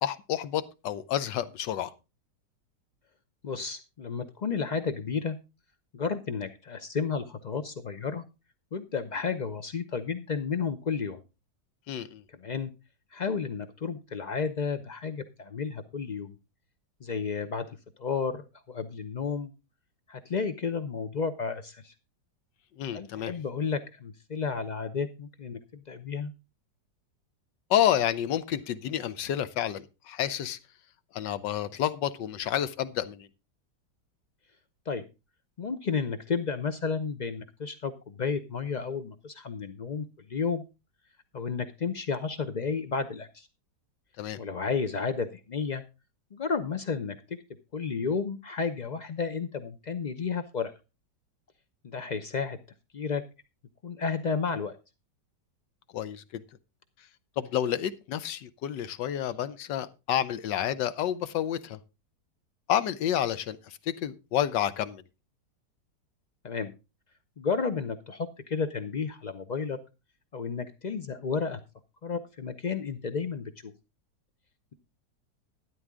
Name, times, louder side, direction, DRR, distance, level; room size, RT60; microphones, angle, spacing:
voice 1, 0.0-1.9 11.9-12.2 22.8-23.3 27.7-30.6 31.1-33.3 44.2-44.4 55.9-56.4 57.4-61.8 62.7-65.0, left 10 dB, 80° left, 14 dB, 1.4 m, -29 dB
voice 2, 3.4-5.4 5.9-8.2 8.7-11.2 12.3-12.7 13.1-16.4 17.0-17.7 18.0-18.4 18.7-19.5 20.1-21.9 22.9-26.3 34.9-35.0 35.6-40.6 41.3-43.5 44.4-45.8 46.3-47.2 47.7-50.7 51.9-52.6 52.9-53.2 53.8-54.7 66.4-66.7 67.4-69.8 70.3-71.6 72.0-73.7, left 5 dB, 65° left, 9 dB, 0.4 m, -32 dB
12.5 x 11.0 x 3.6 m, 0.28 s
omnidirectional pair, 1.9 m